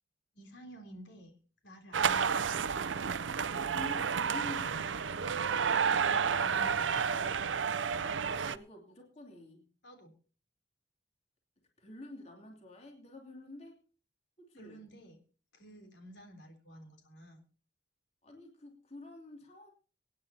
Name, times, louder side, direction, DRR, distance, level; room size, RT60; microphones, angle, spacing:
voice 1, 0.3-1.4 1.6-2.8 5.7-7.2 9.8-10.1 14.5-15.2 15.5-17.4, equal, 75° left, 4 dB, 3.6 m, -52 dB
sound 1, 1.9-8.6, right 6 dB, 90° right, 0.6 m, -31 dB
voice 2, 3.7-5.5 6.2-6.3 8.2-9.7 11.8-13.8 14.4-14.9 18.2-19.7, left 2 dB, 35° left, 1 dB, 2.8 m, -49 dB
25.5 x 9.6 x 2.9 m, 0.37 s
head